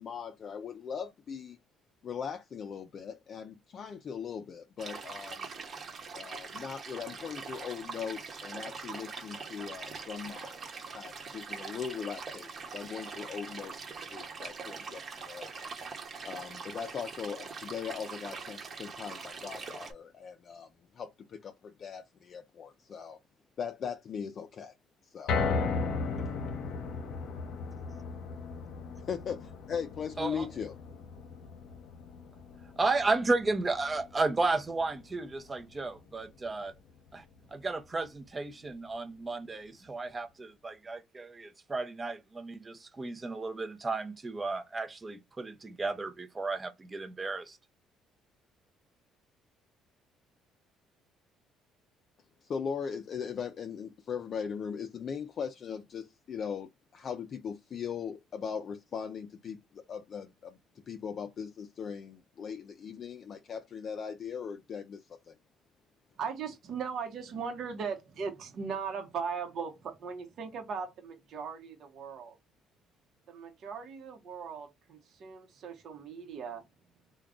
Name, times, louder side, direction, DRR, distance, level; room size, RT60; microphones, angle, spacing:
voice 1, 0.0-1.6 2.0-5.5 6.1-15.7 16.2-23.2 23.6-24.7 25.0-25.4 29.0-30.7 52.4-60.6 60.9-65.4, left 7 dB, 45° left, 0.4 m, -39 dB
sound 1, 4.8-19.9, right 4 dB, 40° right, 1.0 m, -43 dB
sound 2, 25.3-37.5 37.9-38.0 38.5-38.6, left 4 dB, 70° left, 0.8 m, -37 dB
voice 2, 32.8-36.7 37.1-37.2 37.5-47.6, right 3 dB, 20° right, 0.7 m, -33 dB
voice 3, 66.2-72.4 73.3-76.7, right 6 dB, 55° right, 0.8 m, -38 dB
3.5 x 2.2 x 3.7 m
cardioid pair, 120°, 0 cm